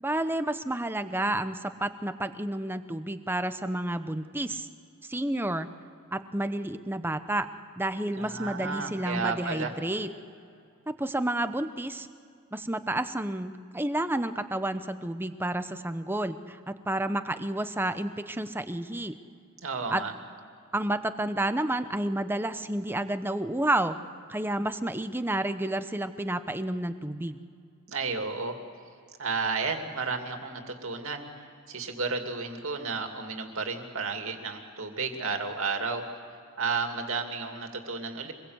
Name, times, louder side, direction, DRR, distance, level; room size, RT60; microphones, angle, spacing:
voice 1, 0.0-4.7 5.0-5.7 6.1-7.5 7.8-10.1 10.9-12.1 12.5-19.2 19.9-20.0 20.7-24.0 24.3-27.4, right 1 dB, 10° right, 10 dB, 0.8 m, -30 dB
voice 2, 8.1-9.7 19.6-20.1 27.9-28.6 29.2-31.3 31.7-36.1 36.6-38.3, right 4 dB, 60° right, 4 dB, 2.6 m, -32 dB
25.5 x 21.5 x 8.0 m, 2.4 s
head